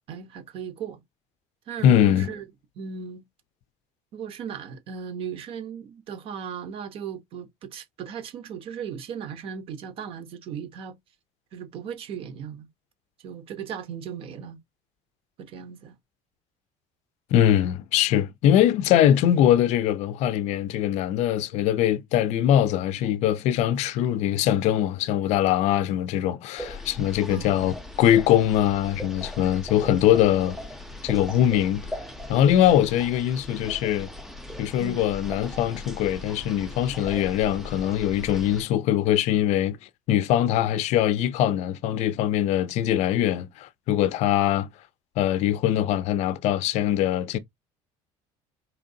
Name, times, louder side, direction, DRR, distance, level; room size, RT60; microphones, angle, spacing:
voice 1, 0.1-1.0 1.7-2.5 2.8-3.2 4.1-11.0 11.5-12.7 13.2-14.6 15.4-15.9 27.3-27.7 34.8-35.0 40.7-40.8, right 7 dB, 40° right, 0.8 m, -37 dB
voice 2, 1.8-2.3 17.3-30.6 31.0-31.9 32.3-34.1 34.6-39.8 40.1-44.7 45.2-47.4, left 11 dB, 50° left, 0.5 m, -22 dB
sound 1, 26.6-38.6, left 2 dB, ahead, 0.5 m, -39 dB
4.5 x 3.4 x 2.7 m
cardioid pair, 175°, 14 cm